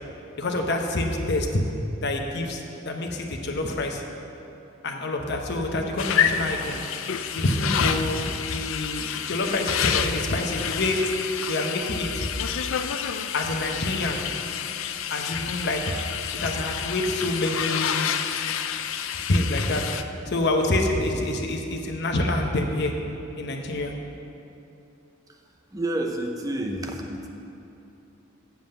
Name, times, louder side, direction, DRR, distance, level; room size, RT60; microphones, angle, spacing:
voice 1, 0.4-1.6 2.0-4.0 4.8-6.8 7.3-8.2 8.5-11.0 11.5-12.2 13.3-14.2 15.1-15.9 16.3-18.1 19.3-19.8 20.3-22.9 23.4-23.9, left 2 dB, 55° left, 2 dB, 1.0 m, -26 dB
sound 1, 6.0-20.0, left 8 dB, 75° left, 0.4 m, -29 dB
voice 2, 25.7-27.3, right 1 dB, 20° right, 3 dB, 0.7 m, -29 dB
7.6 x 7.2 x 7.9 m, 2.8 s
head